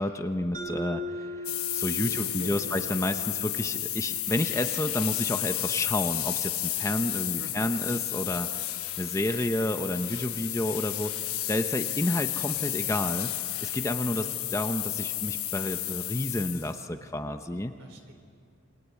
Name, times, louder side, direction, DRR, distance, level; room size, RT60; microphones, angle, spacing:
voice 1, 0.0-11.1 11.5-13.3 13.6-17.8, left 1 dB, 15° left, 7 dB, 0.8 m, -30 dB
Mallet percussion, 0.5-5.1, right 1 dB, 40° right, 6.2 m, -40 dB
sound 1, 1.4-16.8, left 15 dB, 90° left, 1.2 m, -32 dB
voice 2, 1.8-2.6 7.4-7.7 14.1-14.4 17.8-18.1, right 1 dB, 60° right, 5 dB, 4.0 m, -46 dB
28.5 x 23.0 x 8.4 m, 2.4 s
head